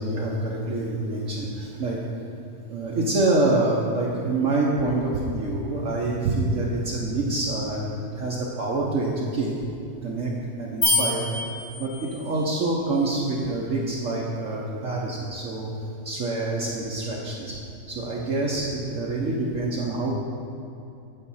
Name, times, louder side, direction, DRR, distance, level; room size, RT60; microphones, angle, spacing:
voice 1, 0.0-2.0 2.7-9.5 10.0-10.3 10.6-11.3 11.8-15.7 16.0-17.6 17.9-20.1, right 2 dB, 60° right, -3 dB, 1.1 m, -26 dB
sound 1, 10.8-12.4, left 2 dB, 80° left, 2.3 m, -26 dB
9.0 x 5.2 x 5.6 m, 2.7 s
omnidirectional pair, 1.7 m